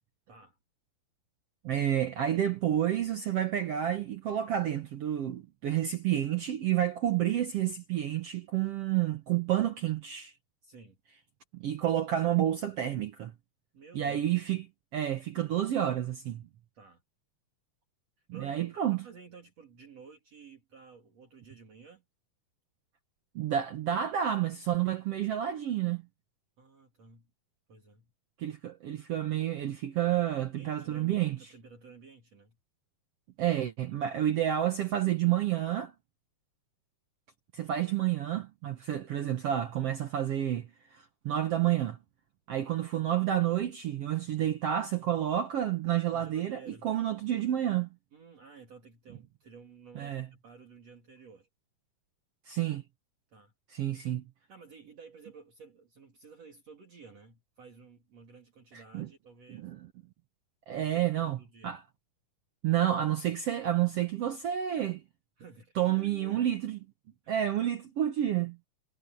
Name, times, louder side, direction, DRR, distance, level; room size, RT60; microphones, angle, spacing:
voice 1, 0.3-0.6 10.6-11.0 13.7-14.3 16.7-17.0 18.2-22.0 26.6-27.3 27.7-28.1 30.6-32.6 42.6-42.8 46.1-46.9 48.1-51.5 53.3-53.5 53.9-54.2 54.5-59.7 60.7-61.8 65.4-66.5 67.2-67.4, right 5 dB, 50° right, 3.8 m, -53 dB
voice 2, 1.6-10.3 11.5-13.3 13.9-14.7 14.9-16.5 18.3-19.0 23.3-26.0 28.4-31.4 33.4-35.9 37.5-42.0 42.5-47.9 49.9-50.3 52.5-52.8 53.7-54.2 58.7-59.1 59.5-59.8 60.7-61.8 62.6-65.0 65.8-66.8 67.3-68.6, right 11 dB, 65° right, 1.5 m, -30 dB
omnidirectional pair, 4.0 m